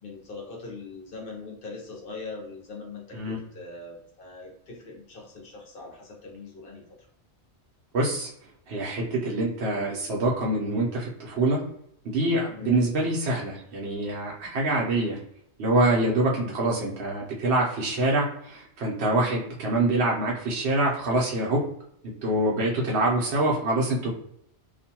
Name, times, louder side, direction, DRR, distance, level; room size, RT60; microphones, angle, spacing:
voice 1, 0.0-6.8 12.5-12.8 16.3-16.6, left 3 dB, 55° left, -1 dB, 0.8 m, -41 dB
voice 2, 7.9-8.3 8.7-11.6 12.0-15.2 15.6-21.6 22.0-24.1, right 2 dB, 65° right, -3 dB, 0.9 m, -25 dB
2.5 x 2.2 x 2.7 m, 0.72 s
omnidirectional pair, 1.2 m